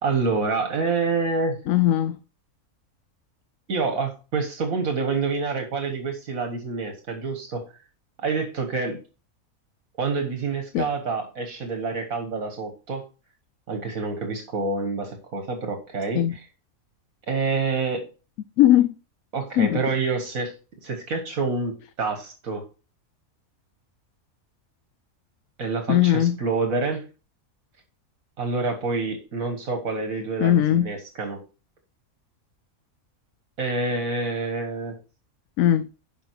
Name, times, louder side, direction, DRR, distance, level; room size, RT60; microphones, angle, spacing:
voice 1, 0.0-1.6 3.7-7.6 8.2-9.0 10.0-13.1 13.7-16.4 17.3-18.1 19.3-20.5 20.8-22.7 25.6-27.0 28.4-31.4 33.6-35.0, right 4 dB, 70° right, 1.8 m, -27 dB
voice 2, 1.7-2.2 10.7-10.9 16.2-16.4 18.6-18.9 19.6-19.8 25.9-26.4 30.4-30.9 35.6-35.9, left 12 dB, 75° left, 1.0 m, -19 dB
10.0 x 5.6 x 4.6 m
omnidirectional pair, 1.5 m